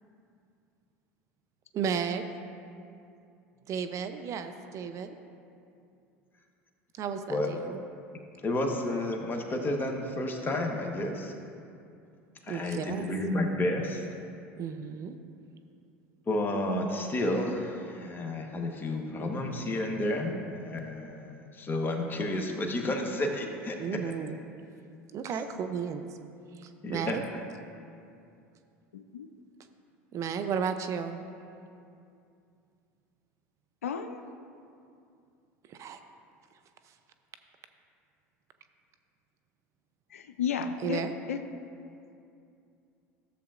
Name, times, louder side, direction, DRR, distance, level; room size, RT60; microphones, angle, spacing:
voice 1, 1.7-2.3 3.7-5.2 7.0-7.8 12.5-13.1 14.6-15.2 23.8-24.4 25.1-26.0 26.6-27.2 30.1-31.2 35.7-36.0 40.8-41.1, right 7 dB, 45° right, 8 dB, 0.5 m, -33 dB
voice 2, 8.4-11.3 12.5-14.0 16.3-23.8 26.8-27.2, left 1 dB, 30° left, 2 dB, 1.1 m, -31 dB
voice 3, 28.9-29.3 33.8-34.2 40.1-41.0 41.3-41.4, left 7 dB, 85° left, 8 dB, 0.4 m, -32 dB
12.5 x 7.1 x 2.5 m, 2.5 s
hypercardioid pair, 80°, 7 cm